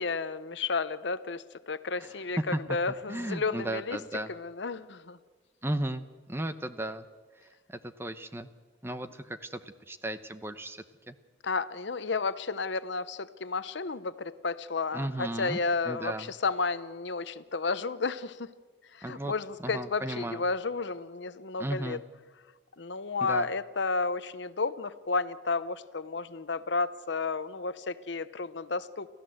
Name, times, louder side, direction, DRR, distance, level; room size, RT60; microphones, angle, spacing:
voice 1, 0.0-4.0 4.3-5.2 11.4-18.5 18.9-22.0 22.8-29.1, left 4 dB, 70° left, 14 dB, 0.8 m, -32 dB
voice 2, 2.0-2.6 3.1-4.3 5.6-7.1 7.7-8.5 8.8-9.6 9.9-11.1 14.9-15.6 15.8-16.3 19.0-19.3 19.6-20.4 21.6-22.0 23.2-23.5, right 1 dB, 10° right, 11 dB, 0.9 m, -35 dB
28.5 x 15.0 x 7.8 m, 1.4 s
head